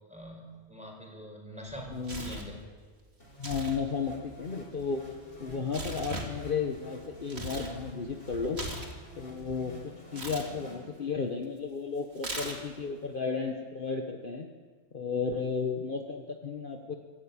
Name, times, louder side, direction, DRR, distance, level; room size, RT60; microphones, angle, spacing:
voice 1, 0.1-2.6, equal, 5° right, 0 dB, 5.2 m, -44 dB
Tearing, 1.7-2.5 3.3-3.8 4.1-7.7 8.1-9.6 10.1-10.5 12.2-12.8, right 1 dB, 55° right, 2.9 m, -40 dB
voice 2, 1.9-2.3 3.4-5.0 5.4-8.6 9.2-9.8 10.1-14.5 14.9-16.9, left 5 dB, 45° left, 3 dB, 1.4 m, -33 dB
sound 1, 3.2-11.4, equal, 70° left, 6.3 m, -50 dB
25.0 x 13.0 x 8.8 m, 1.5 s
omnidirectional pair, 1.3 m